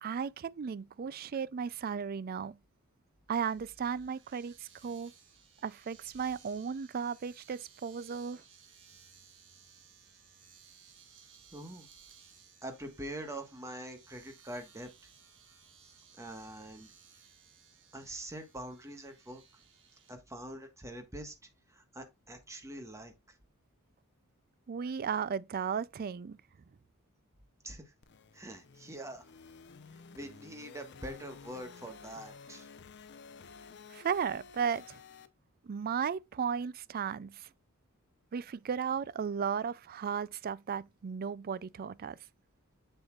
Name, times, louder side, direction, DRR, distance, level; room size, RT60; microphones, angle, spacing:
voice 1, 0.0-2.6 3.3-5.1 5.6-8.4 24.7-26.4 33.9-35.0 35.6-37.5 38.3-42.2, right 6 dB, 45° right, 0.4 m, -35 dB
Domestic sounds home sounds, 3.3-20.2, right 7 dB, 60° right, 1.9 m, -60 dB
voice 2, 11.5-11.9 12.6-14.9 15.8-16.9 17.9-19.4 20.1-21.3 21.7-23.4 27.6-27.9 28.3-29.3 29.9-32.7, right 1 dB, 15° right, 1.4 m, -44 dB
sound 1, 28.0-35.3, left 5 dB, 55° left, 0.7 m, -53 dB
7.0 x 6.9 x 2.4 m
head